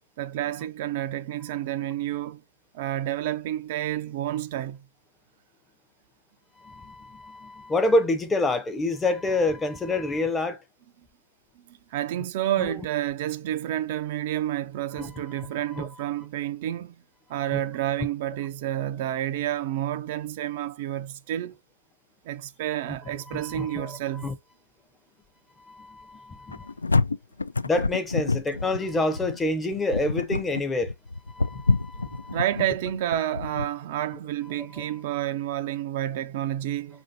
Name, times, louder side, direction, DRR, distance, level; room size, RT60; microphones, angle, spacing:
voice 1, 0.2-2.4 2.7-4.8 11.6-17.0 17.3-21.6 22.2-24.3 32.3-37.0, right 12 dB, 40° right, 0.3 m, -30 dB
voice 2, 6.6-10.6 12.6-12.8 15.0-15.1 15.8-15.9 17.5-17.6 23.3-24.0 24.2-24.3 25.7-26.7 27.6-30.9 31.3-32.4 34.8-34.9, left 2 dB, 10° left, 0.5 m, -27 dB
sound 1, 26.5-33.7, left 3 dB, 90° left, 0.3 m, -27 dB
5.0 x 2.6 x 3.8 m
hypercardioid pair, 135°, 0 cm